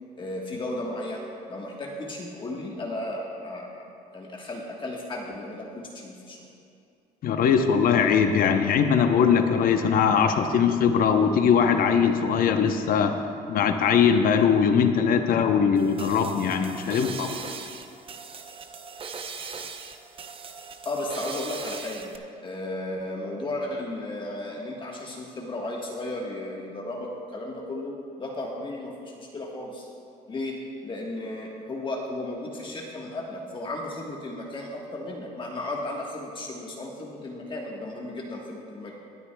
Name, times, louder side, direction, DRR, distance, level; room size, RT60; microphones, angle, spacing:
voice 1, 0.2-3.9 4.1-6.4 20.8-22.1 22.4-29.9 30.3-39.0, left 1 dB, 30° left, -2 dB, 1.3 m, -34 dB
voice 2, 7.2-13.2 13.5-17.5, left 7 dB, 60° left, 7 dB, 0.8 m, -21 dB
sound 1, 15.8-22.2, right 5 dB, 35° right, 0.7 m, -39 dB
22.0 x 9.6 x 2.3 m, 2.5 s
cardioid pair, 110°, 17 cm